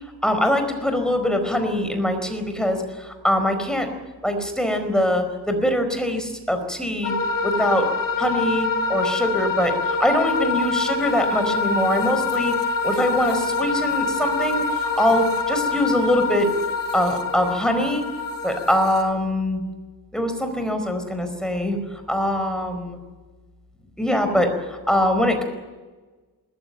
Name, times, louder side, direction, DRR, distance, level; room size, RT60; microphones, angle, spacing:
voice 1, 0.2-3.9 4.2-7.1 7.4-7.9 8.2-12.6 12.8-16.5 16.9-18.0 18.4-19.6 20.1-21.8 22.1-23.0 24.0-25.4, left 1 dB, ahead, 6 dB, 4.5 m, -23 dB
sound 1, 7.0-19.1, left 3 dB, 60° left, 4.7 m, -25 dB
21.0 x 19.5 x 9.2 m, 1.3 s
wide cardioid pair, 145°, 38 cm